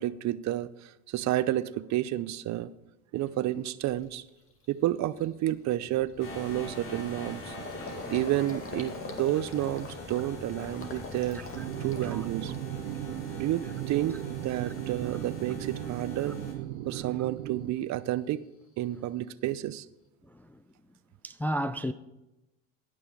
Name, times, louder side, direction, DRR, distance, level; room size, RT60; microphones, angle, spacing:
voice 1, 0.0-2.7 3.1-4.2 4.7-7.5 8.1-11.5 11.8-12.5 13.4-16.4 16.9-18.4 18.8-19.9, right 14 dB, 45° right, 0.6 m, -30 dB
Gurgling, 3.3-3.4 3.9-4.1 4.5-4.7 4.9-13.0 13.3-13.9, left 3 dB, 35° left, 2.0 m, -44 dB
sound 1, 6.2-16.5, left 1 dB, 55° left, 3.8 m, -43 dB
sound 2, 11.5-17.7, right 14 dB, 80° right, 0.7 m, -37 dB
voice 2, 12.9-13.4 20.3-20.5 21.2-21.9, equal, 5° left, 0.4 m, -33 dB
16.5 x 6.1 x 4.7 m
hypercardioid pair, 80°, 38 cm